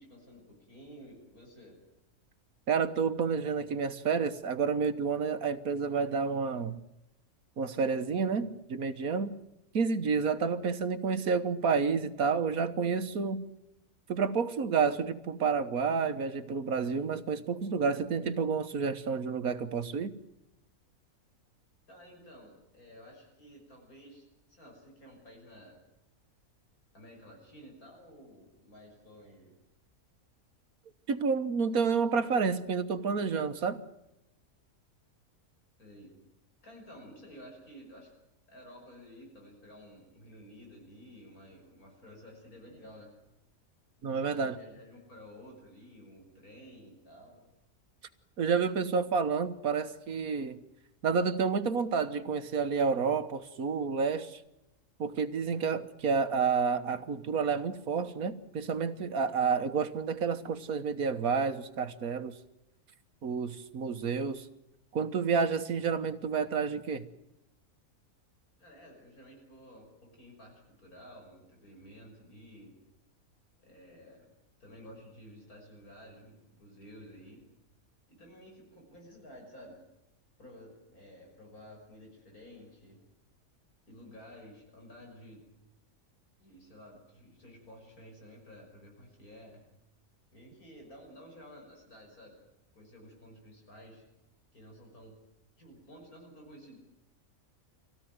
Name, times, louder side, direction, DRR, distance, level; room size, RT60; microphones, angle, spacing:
voice 1, 0.0-1.8 21.9-25.8 26.9-29.5 35.8-36.1 36.6-38.1 38.5-43.1 44.1-47.4 68.6-72.7 73.6-74.3 74.6-77.4 78.1-79.8 80.4-83.0 83.9-85.4 86.4-89.6 90.3-92.3 92.7-94.0 94.5-95.1 95.6-96.8, equal, 80° left, 0 dB, 6.5 m, -52 dB
voice 2, 2.7-6.8 7.6-9.3 9.7-13.4 14.1-20.1 31.1-33.8 44.0-44.6 48.4-50.6 51.0-54.4 55.0-62.4 63.2-64.5 64.9-67.1, right 5 dB, 80° right, 9 dB, 1.8 m, -30 dB
25.0 x 17.0 x 9.5 m, 0.90 s
omnidirectional pair, 1.5 m